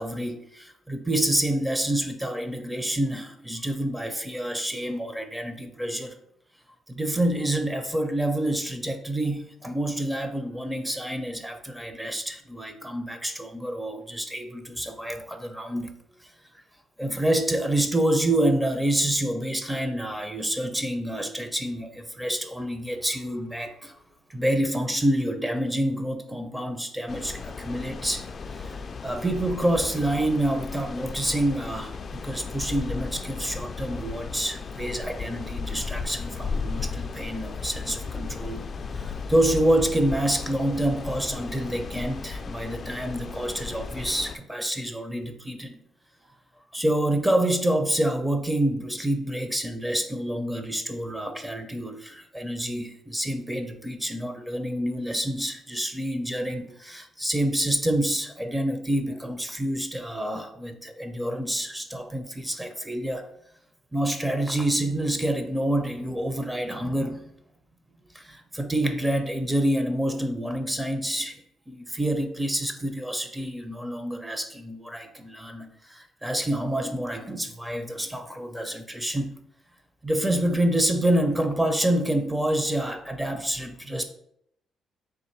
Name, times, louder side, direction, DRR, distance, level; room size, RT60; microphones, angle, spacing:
voice 1, 0.0-6.2 6.9-15.9 17.0-23.9 24.3-28.2 28.5-38.6 38.9-45.8 46.7-63.3 63.9-67.3 68.1-79.4 80.0-84.0, right 1 dB, 10° right, 6 dB, 0.5 m, -27 dB
sound 1, 27.1-44.4, left 5 dB, 40° left, 0.3 m, -35 dB
3.7 x 2.5 x 4.5 m, 0.72 s
cardioid pair, 90°, 0 cm